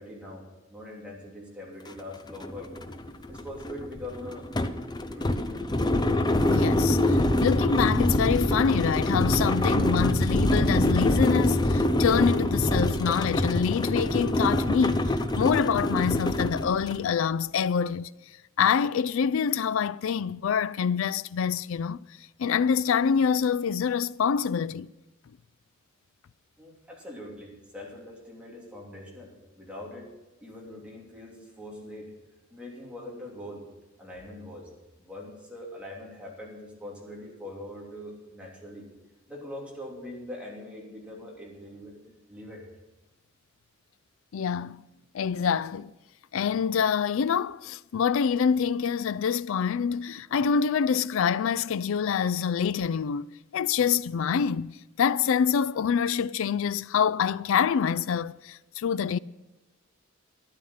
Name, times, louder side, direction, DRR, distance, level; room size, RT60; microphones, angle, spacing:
voice 1, 0.0-2.7 3.3-4.5 5.1-5.7 26.6-30.1 30.4-32.1 32.5-33.6 34.0-34.7 35.0-38.9 39.3-42.0 42.3-42.7, left 1 dB, 5° right, 3.1 m, -42 dB
sound 1, 1.9-2.0 2.3-17.0, left 1 dB, 20° left, 0.6 m, -25 dB
voice 2, 6.5-15.1 15.4-18.1 18.6-22.0 22.4-24.9 44.3-44.9 45.1-45.9 46.3-53.3 53.5-59.2, left 7 dB, 65° left, 0.4 m, -26 dB
12.5 x 11.5 x 5.7 m
head